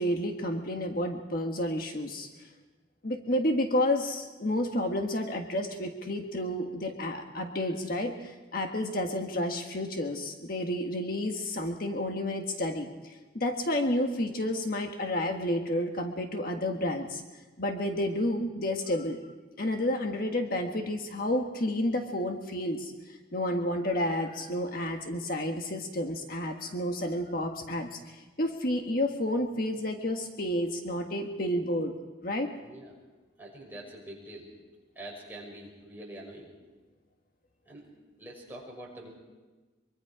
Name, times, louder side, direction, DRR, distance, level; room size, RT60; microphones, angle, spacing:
voice 1, 0.0-2.3 3.0-17.2 17.6-19.2 19.6-31.9 32.2-32.5, left 1 dB, 50° left, 4 dB, 1.6 m, -30 dB
voice 2, 32.6-32.9 33.4-34.5 34.9-36.5 37.7-37.9 38.2-39.1, right 1 dB, 10° right, -3 dB, 5.8 m, -45 dB
24.0 x 24.0 x 5.0 m, 1.2 s
head